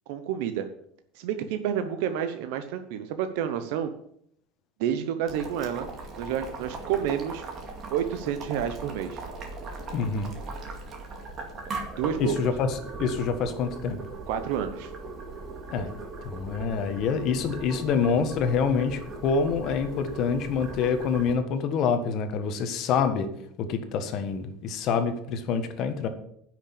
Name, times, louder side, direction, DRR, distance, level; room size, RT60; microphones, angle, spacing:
voice 1, 0.1-0.7 1.1-3.9 4.8-5.9 6.2-7.4 7.9-9.2 12.0-12.4 14.3-14.9, right 9 dB, 70° right, 8 dB, 0.9 m, -29 dB
Boiling, 5.3-21.3, right 3 dB, 30° right, 2.2 m, -39 dB
voice 2, 9.9-10.3 12.2-14.0 15.7-15.9 16.2-23.3 23.6-26.1, left 6 dB, 40° left, 8 dB, 1.4 m, -26 dB
9.9 x 6.4 x 8.7 m, 0.71 s
cardioid pair, 170°, 0 cm